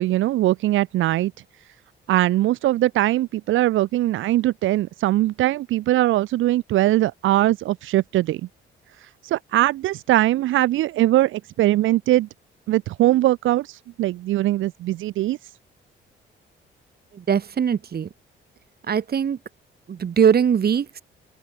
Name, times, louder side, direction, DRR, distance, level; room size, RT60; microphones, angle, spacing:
voice 1, 0.0-1.3 2.1-8.4 9.2-12.3 12.7-15.4, right 15 dB, 85° right, 1.1 m, -21 dB
voice 2, 17.1-18.1 18.9-19.4 19.9-21.0, right 7 dB, 50° right, 6.0 m, -21 dB
open air
cardioid pair, 90°, 20 cm